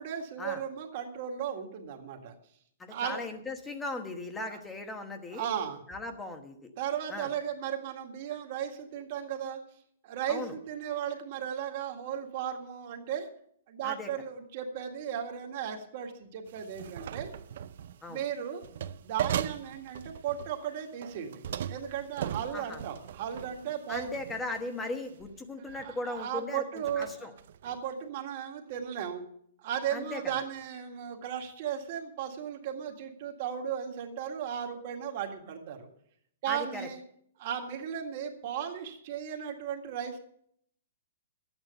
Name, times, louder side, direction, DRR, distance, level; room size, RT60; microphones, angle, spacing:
voice 1, 0.0-2.3 2.9-3.3 4.5-4.6 5.3-5.8 6.8-9.6 10.0-13.3 13.7-17.3 18.1-18.6 19.0-21.4 21.7-24.1 25.7-27.3 27.6-29.2 29.6-35.9 36.4-37.0 37.4-40.2, right 9 dB, 35° right, 3 dB, 2.0 m, -36 dB
voice 2, 2.8-5.5 5.9-6.7 7.1-7.3 10.3-10.5 13.8-14.1 18.0-18.2 22.5-22.8 23.9-27.3 29.9-30.4 36.5-36.9, left 2 dB, 10° left, 6 dB, 1.2 m, -38 dB
sound 1, 16.5-18.0 18.6-20.6 21.0-24.7 25.2-25.4 25.7-26.2 26.8-27.8, right 10 dB, 55° right, 0.6 m, -38 dB
13.0 x 9.1 x 6.7 m, 0.66 s
hypercardioid pair, 170°, 0 cm